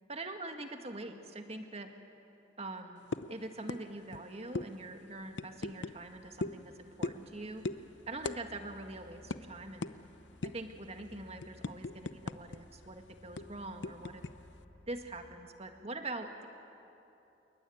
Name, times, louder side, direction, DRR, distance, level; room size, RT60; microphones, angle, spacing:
voice 1, 0.1-1.9 2.6-3.0 3.3-9.9 10.4-14.2 14.9-16.5, right 2 dB, 35° right, 5 dB, 2.0 m, -44 dB
sound 1, 3.1-3.3 3.7-3.8 4.1-4.2 4.6-4.7 5.4-6.0 6.4-6.6 7.0-7.3 7.6-7.8 8.2-8.4 8.7-8.8 9.3-9.4 9.8-10.0 10.4-10.7 11.1-12.6 12.8-13.0 13.4-14.3, left 3 dB, 80° left, 0.7 m, -37 dB
sound 2, 3.9-15.4, left 1 dB, 10° left, 1.7 m, -60 dB
27.5 x 22.5 x 9.6 m, 2.9 s
head